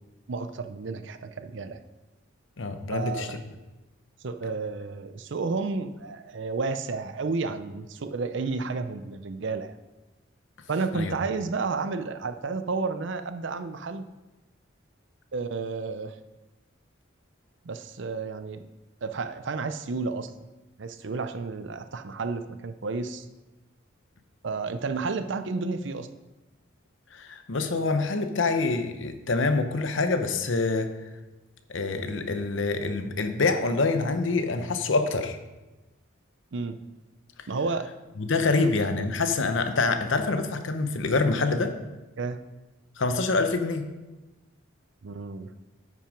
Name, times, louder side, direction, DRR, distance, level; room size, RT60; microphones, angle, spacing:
voice 1, 0.3-1.8 2.9-3.4 4.2-9.7 10.7-14.0 15.3-16.1 17.6-18.6 19.0-20.3 20.8-23.3 24.4-26.1 36.5-36.8 37.5-37.9 38.5-38.7 42.2-42.4 45.0-45.5, right 4 dB, 60° right, 10 dB, 0.5 m, -31 dB
voice 2, 2.6-3.3 10.9-11.1 27.1-30.9 31.7-35.4 38.2-41.7 43.0-43.9, left 3 dB, 65° left, 8 dB, 0.8 m, -26 dB
9.0 x 6.1 x 5.1 m, 1.1 s
head